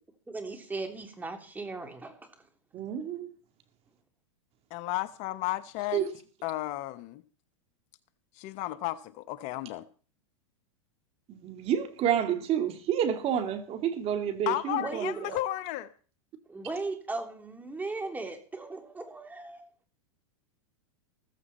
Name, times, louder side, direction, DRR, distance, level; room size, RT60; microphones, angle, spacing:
voice 1, 0.3-2.3 14.8-15.2 16.5-19.7, right 3 dB, 10° right, 3.2 m, -37 dB
voice 2, 2.7-3.3 5.9-6.0 11.3-15.1, right 9 dB, 40° right, 2.4 m, -29 dB
voice 3, 4.7-6.0 6.4-7.2 8.3-9.9 14.5-15.9, left 16 dB, 45° left, 1.0 m, -33 dB
15.0 x 14.5 x 4.3 m
hypercardioid pair, 110°, 16 cm